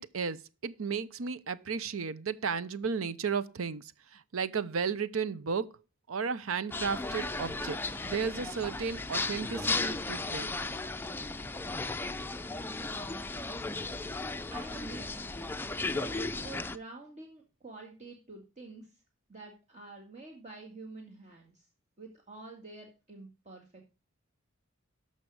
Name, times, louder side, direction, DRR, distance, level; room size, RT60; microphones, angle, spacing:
voice 1, 0.0-5.7 6.1-10.6, right 5 dB, 85° right, 0.7 m, -34 dB
sound 1, 6.7-16.8, left 3 dB, 10° left, 0.5 m, -35 dB
voice 2, 14.5-15.1 15.9-18.9 19.3-21.7 22.0-23.8, right 2 dB, 35° right, 2.1 m, -47 dB
13.5 x 5.6 x 4.8 m
head